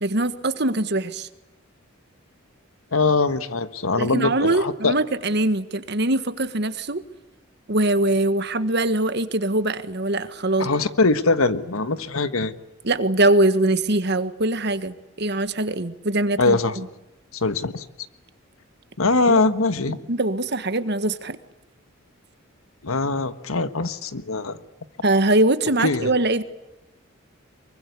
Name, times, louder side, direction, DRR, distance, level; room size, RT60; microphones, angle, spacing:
voice 1, 0.0-1.3 4.0-7.0 7.7-10.7 12.8-16.9 19.3-19.4 20.1-21.4 25.0-26.4, right 2 dB, 55° right, 11 dB, 1.6 m, -22 dB
voice 2, 2.9-4.9 10.6-12.5 16.4-16.8 17.3-17.8 19.0-20.0 22.8-24.6 25.8-26.1, left 3 dB, 90° left, 12 dB, 1.5 m, -22 dB
24.5 x 23.5 x 8.4 m, 0.96 s
head